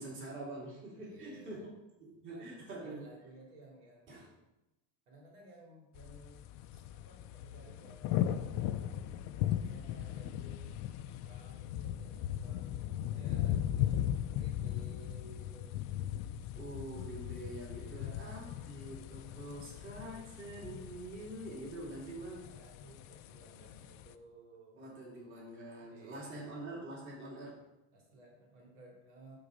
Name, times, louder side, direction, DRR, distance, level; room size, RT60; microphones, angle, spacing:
voice 1, 0.0-1.6 2.0-3.1 4.1-4.3 16.5-22.6 24.8-27.6, right 1 dB, 30° right, -5 dB, 2.8 m, -45 dB
voice 2, 1.0-1.7 2.3-4.3 5.1-8.8 9.6-10.8 11.2-14.1 14.4-15.7 17.8-18.5 22.3-24.8 25.8-26.5 27.9-29.4, right 1 dB, 85° right, -1 dB, 3.1 m, -57 dB
sound 1, 6.0-24.1, left 11 dB, 50° left, 0.5 m, -38 dB
12.0 x 4.0 x 5.1 m, 0.94 s
cardioid pair, 165°, 37 cm